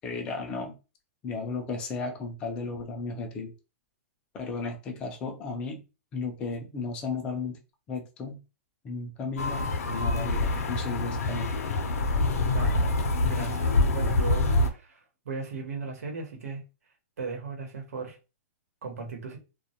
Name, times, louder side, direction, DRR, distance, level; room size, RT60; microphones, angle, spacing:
voice 1, 0.0-0.8 1.2-3.5 4.3-5.8 6.1-7.6 7.9-8.4 8.8-11.6, left 4 dB, 10° left, 0.3 m, -34 dB
sound 1, 9.4-14.7, left 2 dB, 80° left, 0.5 m, -26 dB
voice 2, 12.5-16.6 17.2-18.2 18.8-19.4, right 4 dB, 90° right, 1.0 m, -37 dB
2.2 x 2.1 x 2.7 m
hypercardioid pair, 180°, 8 cm